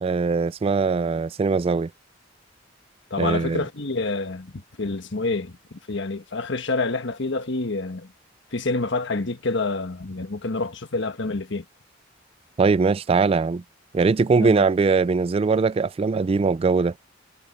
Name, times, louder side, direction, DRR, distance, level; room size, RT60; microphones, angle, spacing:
voice 1, 0.0-1.9 3.2-3.6 12.6-13.6 13.9-16.9, right 4 dB, 30° right, 0.3 m, -21 dB
voice 2, 3.1-8.1 8.5-11.6 14.4-14.7, left 3 dB, 65° left, 1.4 m, -28 dB
head